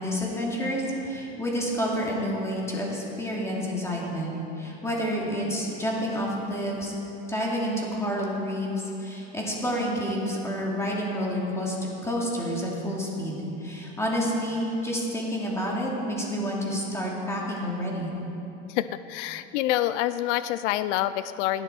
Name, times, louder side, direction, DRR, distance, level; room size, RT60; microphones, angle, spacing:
voice 1, 0.0-6.9 7.3-11.8 12.0-18.1, equal, 10° left, -3 dB, 2.6 m, -29 dB
voice 2, 18.7-21.6, left 13 dB, 85° left, 14 dB, 0.5 m, -27 dB
17.5 x 11.5 x 4.5 m, 2.9 s
supercardioid pair, 140°, 35 cm